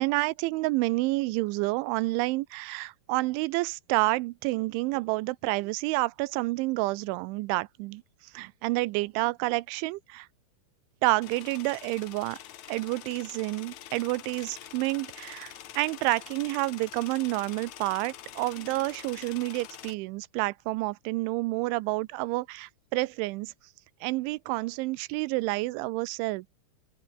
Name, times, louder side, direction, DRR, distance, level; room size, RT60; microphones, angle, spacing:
voice 1, 0.0-8.0 8.3-10.3 11.0-12.4 12.7-23.5 24.0-26.5, right 21 dB, 90° right, 3.1 m, -29 dB
sound 1, 11.2-19.9, left 12 dB, 85° left, 1.6 m, -46 dB
open air
omnidirectional pair, 5.3 m